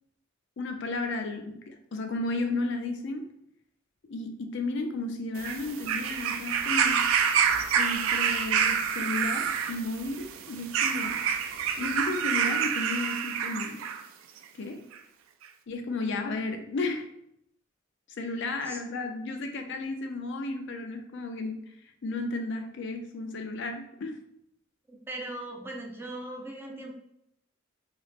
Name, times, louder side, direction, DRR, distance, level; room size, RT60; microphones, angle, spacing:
voice 1, 0.6-3.2 4.1-7.0 7.7-11.2 11.8-13.8 14.6-14.8 15.7-17.1 18.2-21.6 22.0-24.2, left 2 dB, 65° left, 5 dB, 0.5 m, -33 dB
sound 1, 5.4-14.0 14.9-15.0, right 7 dB, 85° right, 0.3 m, -27 dB
voice 2, 24.9-27.0, right 1 dB, 10° right, 0 dB, 0.5 m, -39 dB
3.0 x 2.9 x 2.4 m, 0.78 s
head